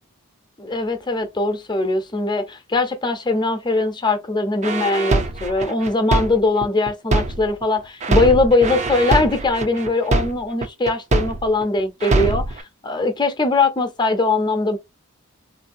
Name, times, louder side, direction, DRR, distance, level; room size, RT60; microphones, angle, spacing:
voice 1, 0.6-14.8, left 3 dB, 20° left, 0.7 m, -21 dB
sound 1, 4.6-7.6 8.0-11.6 12.0-12.6, right 2 dB, 30° right, 0.5 m, -22 dB
3.7 x 2.6 x 2.6 m
head